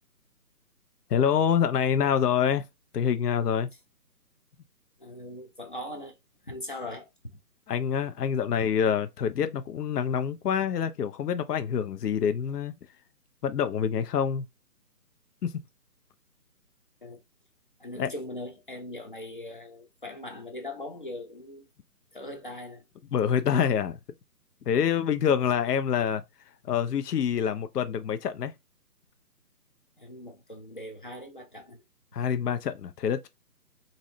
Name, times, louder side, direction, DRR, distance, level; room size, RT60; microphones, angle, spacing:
voice 1, 1.1-2.6 2.9-3.7 7.7-12.7 13.4-14.4 15.4-15.5 18.0-18.1 23.1-24.0 24.7-26.2 26.7-28.5 32.1-33.3, left 8 dB, 80° left, 0.6 m, -26 dB
voice 2, 5.0-6.2 6.4-7.4 17.0-17.2 17.8-21.7 22.1-22.8 30.0-31.8, left 1 dB, 35° left, 0.5 m, -40 dB
3.0 x 2.7 x 2.6 m
hypercardioid pair, 155°, 47 cm